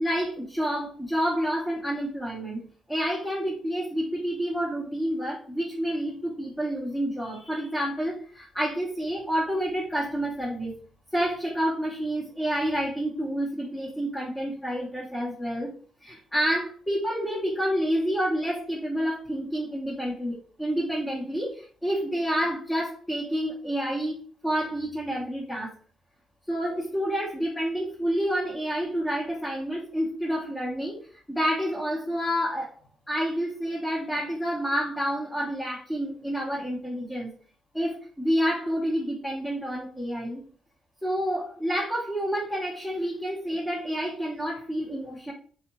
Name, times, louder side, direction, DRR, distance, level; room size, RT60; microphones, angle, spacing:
voice 1, 0.0-2.6 2.9-10.8 11.1-15.7 16.0-24.2 24.4-25.7 26.5-31.0 31.3-32.7 33.1-37.3 37.7-40.4 41.0-45.3, equal, 10° left, -5 dB, 1.0 m, -29 dB
3.6 x 2.5 x 3.0 m, 0.43 s
cardioid pair, 90°, 0 cm